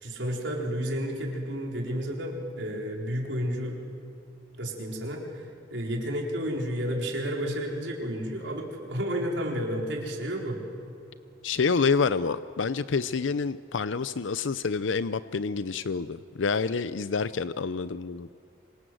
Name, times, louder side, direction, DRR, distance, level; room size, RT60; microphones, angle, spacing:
voice 1, 0.0-3.8 4.6-10.6, equal, 75° right, 0 dB, 4.6 m, -31 dB
voice 2, 11.4-18.3, left 5 dB, 90° left, 14 dB, 0.6 m, -28 dB
26.5 x 26.0 x 7.9 m, 2.6 s
head